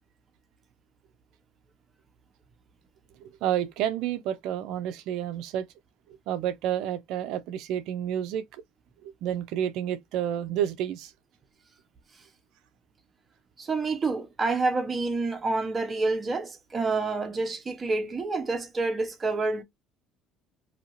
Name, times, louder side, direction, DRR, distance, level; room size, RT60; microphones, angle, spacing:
voice 1, 3.2-5.7 6.3-8.6 9.2-11.1, right 10 dB, 75° right, 0.4 m, -30 dB
voice 2, 13.6-19.6, right 3 dB, 30° right, 0.8 m, -28 dB
2.7 x 2.6 x 2.9 m
supercardioid pair, 85°, 0 cm